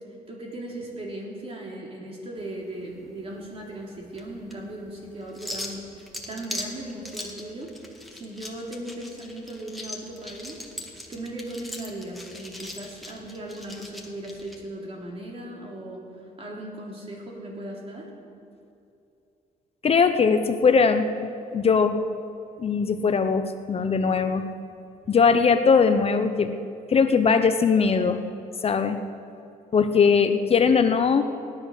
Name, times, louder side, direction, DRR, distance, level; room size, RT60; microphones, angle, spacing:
voice 1, 0.3-7.7 8.1-10.6 11.1-16.1 16.4-18.1, right 1 dB, 35° right, -1 dB, 3.5 m, -37 dB
sound 1, 2.4-14.6, left 1 dB, ahead, 1.9 m, -40 dB
voice 2, 19.8-22.0 22.6-24.5 25.1-26.5 26.9-28.2 28.6-29.0 29.7-31.2, left 5 dB, 40° left, 8 dB, 0.8 m, -20 dB
17.5 x 10.5 x 6.5 m, 2.7 s
cardioid pair, 105°, 16 cm